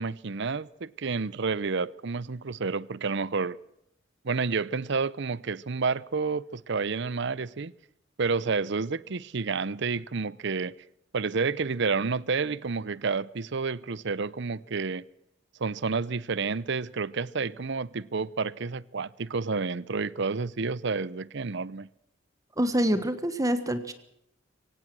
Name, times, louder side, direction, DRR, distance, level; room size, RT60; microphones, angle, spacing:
voice 1, 0.0-3.6 4.2-7.7 8.2-10.8 11.1-15.0 15.6-21.9, right 4 dB, 65° right, 0.7 m, -30 dB
voice 2, 22.6-23.9, equal, 20° right, 1.3 m, -26 dB
24.0 x 17.5 x 6.2 m
head